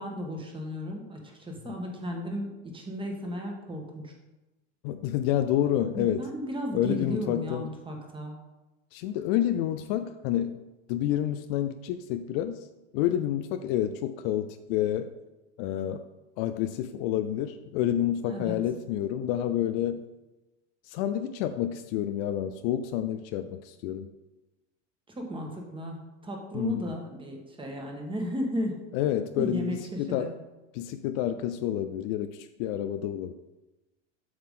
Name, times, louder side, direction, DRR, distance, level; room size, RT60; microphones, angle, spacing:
voice 1, 0.0-4.1 6.2-8.4 18.2-18.6 25.1-28.8 29.4-30.3, equal, 15° right, 2 dB, 1.5 m, -35 dB
voice 2, 4.8-6.3 6.7-7.7 8.9-10.6 10.9-12.6 12.9-15.1 15.6-16.0 16.4-20.0 20.9-24.1 26.5-26.9 28.9-30.3 30.7-33.3, left 11 dB, 50° left, 9 dB, 0.5 m, -29 dB
7.8 x 5.8 x 3.7 m, 1.0 s
supercardioid pair, 120°, 37 cm